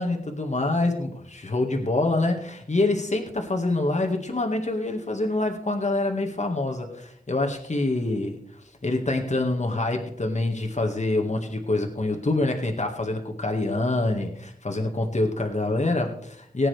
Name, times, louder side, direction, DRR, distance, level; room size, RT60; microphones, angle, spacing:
voice 1, 0.0-8.4 8.8-16.7, left 2 dB, 45° left, 2 dB, 1.8 m, -26 dB
18.5 x 8.7 x 3.4 m, 0.69 s
wide cardioid pair, 60°, 16 cm